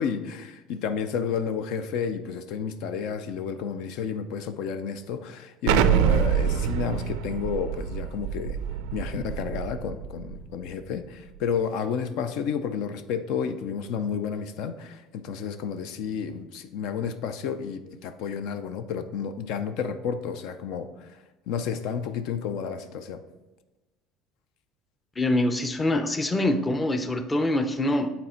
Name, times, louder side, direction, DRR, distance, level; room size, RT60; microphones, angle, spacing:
voice 1, 0.0-8.6 8.9-23.2, left 7 dB, 70° left, 10 dB, 0.5 m, -31 dB
Explosion, 5.7-10.4, right 9 dB, 85° right, 0.4 m, -26 dB
voice 2, 25.2-28.1, left 1 dB, 15° left, 8 dB, 0.6 m, -24 dB
8.1 x 4.2 x 4.4 m, 1.1 s
cardioid pair, 130°, 0 cm